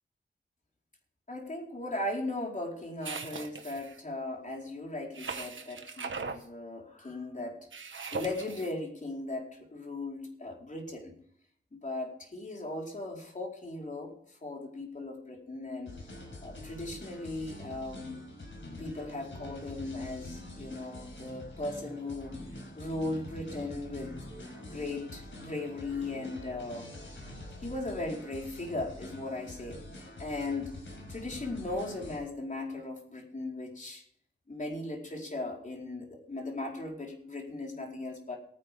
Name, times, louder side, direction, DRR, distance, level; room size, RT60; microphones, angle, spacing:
voice 1, 1.3-7.6 8.1-11.1 11.7-14.1 14.4-15.9 16.4-18.2 18.8-22.3 22.7-24.1 24.6-26.9 27.6-30.7 31.1-34.0 34.5-38.4, left 2 dB, 40° left, 0 dB, 4.4 m, -37 dB
sound 1, 3.0-4.0 5.1-6.4 7.7-8.7, right 5 dB, 85° right, 1.4 m, -39 dB
sound 2, 15.8-32.2, left 1 dB, 85° left, 5.2 m, -46 dB
22.0 x 9.9 x 3.6 m, 0.62 s
wide cardioid pair, 95°, 20 cm